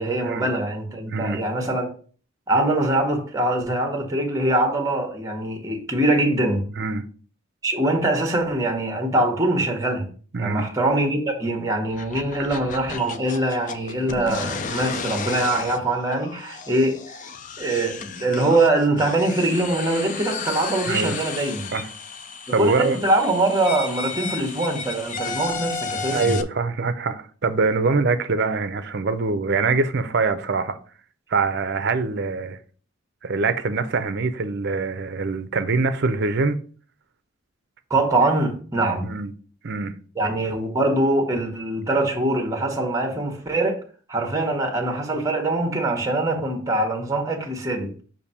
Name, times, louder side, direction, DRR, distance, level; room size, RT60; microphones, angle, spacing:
voice 1, 0.0-1.9 2.5-6.7 7.6-10.1 10.4-17.0 17.6-21.7 22.5-26.3 37.9-39.1 40.2-43.8 44.1-47.9, right 2 dB, 15° right, 1.0 m, -23 dB
voice 2, 1.1-1.4 6.8-7.0 10.3-10.7 20.9-21.2 21.7-21.9 22.5-23.0 26.1-30.8 31.3-32.6 33.2-36.6 39.0-39.3 39.6-39.9, right 3 dB, 50° right, 0.5 m, -24 dB
sound 1, 11.9-26.4, left 5 dB, 35° left, 0.4 m, -33 dB
6.8 x 2.6 x 5.6 m
head